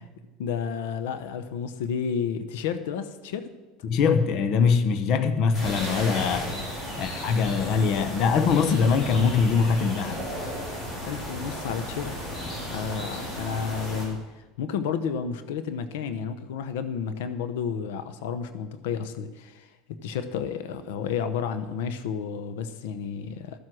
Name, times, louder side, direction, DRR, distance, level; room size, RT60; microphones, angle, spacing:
voice 1, 0.4-3.5 6.3-6.6 11.0-12.1 12.4-14.2 14.6-23.6, left 7 dB, 85° left, 0.8 m, -31 dB
voice 2, 3.8-6.5 7.0-10.3, left 5 dB, 50° left, 0.8 m, -22 dB
sound 1, 5.5-14.1, equal, 25° left, 4.8 m, -34 dB
13.5 x 7.8 x 6.2 m
supercardioid pair, 150°, 0 cm